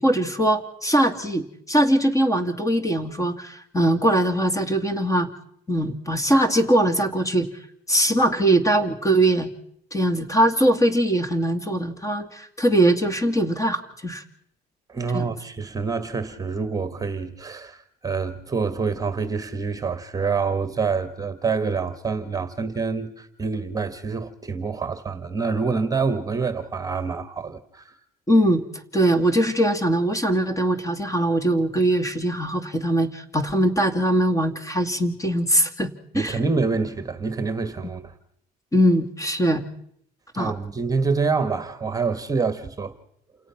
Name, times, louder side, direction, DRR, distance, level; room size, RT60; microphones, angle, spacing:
voice 1, 0.0-5.3 5.7-7.5 7.9-9.5 9.9-14.2 15.1-15.3 28.3-28.6 28.9-35.9 36.1-36.4 38.7-39.6 40.4-40.5, right 1 dB, 20° left, 2.4 m, -21 dB
voice 2, 14.9-27.9 36.1-38.1 40.3-42.9, right 4 dB, 20° right, 1.7 m, -26 dB
28.5 x 17.5 x 5.9 m
cardioid pair, 110°, 17 cm